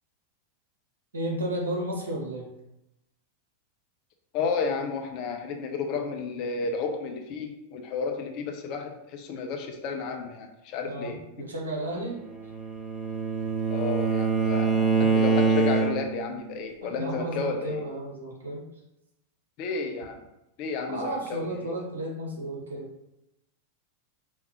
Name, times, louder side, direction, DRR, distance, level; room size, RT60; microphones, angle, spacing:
voice 1, 1.1-2.4 10.8-12.2 16.9-18.6 20.9-22.9, right 1 dB, 70° right, -3 dB, 1.5 m, -33 dB
voice 2, 4.3-11.5 13.7-17.8 19.6-20.2 20.6-21.8, left 5 dB, 40° left, 4 dB, 0.7 m, -32 dB
Bowed string instrument, 12.3-16.3, right 4 dB, 10° right, 0.9 m, -24 dB
4.5 x 3.8 x 3.0 m, 0.89 s
figure-of-eight pair, 90°, 0 cm